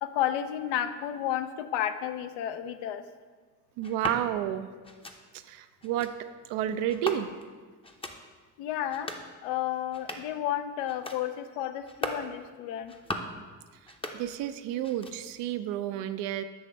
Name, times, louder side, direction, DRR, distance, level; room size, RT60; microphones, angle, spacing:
voice 1, 0.0-3.0 8.6-9.1 9.4-12.9, left 11 dB, 80° left, 9 dB, 0.6 m, -32 dB
sound 1, 3.8-4.2 4.8-5.2 5.8-6.1 6.9-7.5 7.8-8.2 8.8-9.3 9.8-10.4 10.8-11.2 11.8-12.3 12.8-13.4 13.8-14.5 14.8-15.4, left 1 dB, 15° left, 0.6 m, -38 dB
voice 2, 3.8-4.7 5.3-6.1 6.5-7.3 14.1-16.4, right 11 dB, 75° right, 11 dB, 0.5 m, -31 dB
7.8 x 3.3 x 5.1 m, 1.5 s
supercardioid pair, 65°, 42 cm